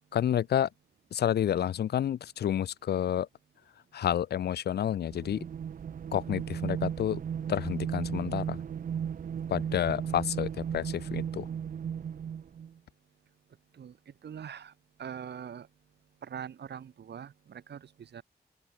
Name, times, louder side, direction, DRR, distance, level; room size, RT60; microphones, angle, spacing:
voice 1, 0.1-0.7 1.1-3.3 3.9-5.4 6.1-7.2 7.5-8.6 9.5-11.5, left 10 dB, 70° left, 0.5 m, -29 dB
sound 1, 5.0-12.7, right 8 dB, 55° right, 0.5 m, -35 dB
voice 2, 14.2-14.7 15.0-15.7 16.2-18.2, right 8 dB, 80° right, 3.5 m, -42 dB
open air
cardioid pair, 50°, 17 cm